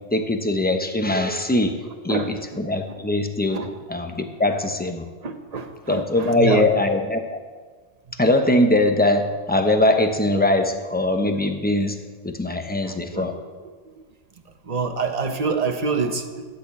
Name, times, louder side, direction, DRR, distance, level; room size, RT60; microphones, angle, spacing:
voice 1, 0.1-1.8 2.0-3.6 3.9-5.0 5.9-7.4 8.2-13.3, left 1 dB, 10° left, 5 dB, 0.8 m, -21 dB
voice 2, 5.2-6.6 12.9-13.3 14.7-16.4, right 4 dB, 35° right, 6 dB, 0.9 m, -26 dB
11.5 x 6.4 x 8.3 m, 1.4 s
omnidirectional pair, 1.3 m